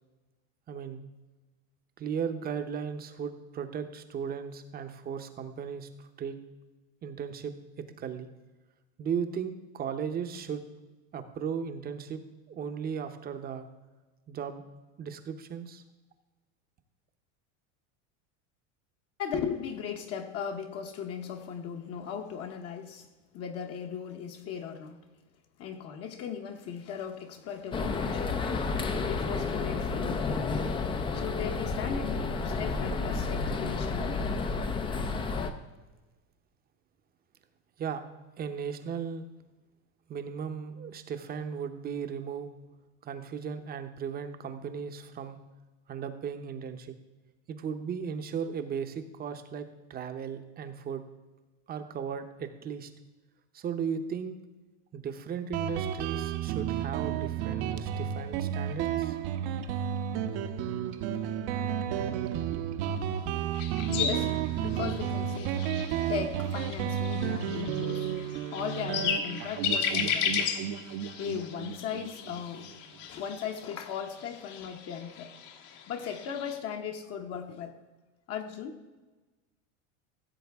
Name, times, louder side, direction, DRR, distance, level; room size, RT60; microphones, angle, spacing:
voice 1, 0.7-1.0 2.0-6.4 7.0-8.3 9.0-10.6 11.1-12.2 12.5-13.7 14.3-14.6 15.0-15.8 37.8-38.0 38.4-39.2 40.1-42.5 43.0-45.4 45.9-46.9 47.5-51.0 51.7-52.9 53.5-54.3 54.9-59.2, right 7 dB, 25° right, 8 dB, 0.8 m, -36 dB
voice 2, 19.2-23.1 23.3-25.0 25.6-28.4 29.1-30.5 31.1-34.3 63.0-63.1 63.9-65.6 65.9-75.3 75.9-77.8 78.3-78.8, left 7 dB, 40° left, 4 dB, 0.9 m, -37 dB
sound 1, 27.7-35.5, left 4 dB, 15° left, 0.4 m, -31 dB
Guitar, 55.5-72.7, right 9 dB, 60° right, 0.9 m, -32 dB
sound 2, 63.5-76.6, left 7 dB, 70° left, 1.5 m, -35 dB
15.0 x 7.6 x 3.5 m, 1.2 s
supercardioid pair, 145°, 38 cm